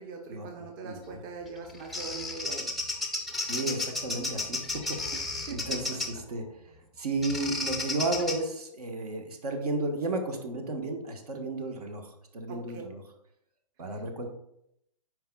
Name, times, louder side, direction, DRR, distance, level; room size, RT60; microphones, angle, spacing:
voice 1, 0.0-2.7 5.1-5.2 5.5-6.0 12.5-12.8 13.9-14.0, right 4 dB, 30° right, 2 dB, 0.8 m, -41 dB
voice 2, 0.8-1.2 3.5-5.2 5.5-13.0 13.8-14.3, right 2 dB, 65° right, 5 dB, 1.2 m, -33 dB
Bird vocalization bird call bird song, 1.5-6.2 7.2-8.4, left 2 dB, ahead, 0.5 m, -33 dB
9.2 x 4.8 x 2.3 m, 0.78 s
hypercardioid pair, 130°, 21 cm